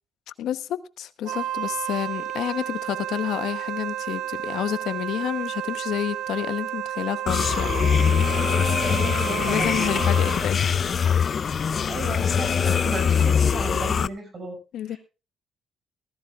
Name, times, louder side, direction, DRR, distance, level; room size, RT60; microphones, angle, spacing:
voice 1, 0.4-8.1 9.2-10.8 14.7-15.0, left 11 dB, 80° left, 0.9 m, -29 dB
Wind instrument woodwind instrument, 1.2-10.5, right 12 dB, 80° right, 0.6 m, -31 dB
sound 1, 7.3-14.1, left 7 dB, 45° left, 0.5 m, -22 dB
voice 2, 8.8-9.9 11.8-14.5 14.9-15.0, right 2 dB, 45° right, 6.4 m, -34 dB
19.0 x 13.5 x 2.4 m
cardioid pair, 90°, 0 cm